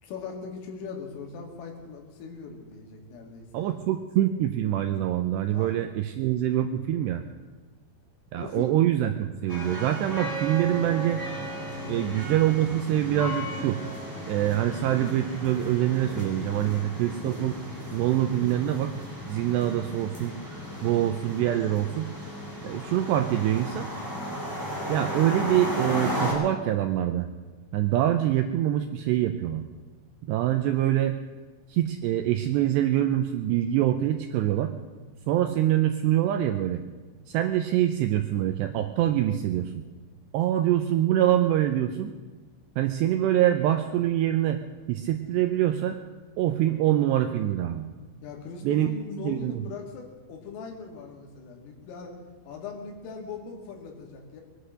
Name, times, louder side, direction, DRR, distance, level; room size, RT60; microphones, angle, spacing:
voice 1, 0.0-3.8 5.5-5.7 8.4-8.7 11.7-12.1 12.7-12.8 48.2-52.1 52.5-54.4, left 5 dB, 90° left, 2 dB, 4.9 m, -40 dB
voice 2, 3.5-7.2 8.3-11.3 11.9-13.8 14.3-17.6 17.9-18.9 19.3-20.3 20.8-22.1 22.6-23.9 24.9-27.3 27.7-29.6 30.3-31.2 31.7-34.7 35.3-36.8 37.3-39.7 40.3-42.1 42.8-44.6 44.9-46.0 46.4-47.9 48.6-48.9 49.2-49.7, right 12 dB, 85° right, 6 dB, 2.4 m, -25 dB
sound 1, 9.5-26.3, equal, 5° left, 5.1 m, -35 dB
22.0 x 10.0 x 6.5 m, 1.3 s
omnidirectional pair, 5.7 m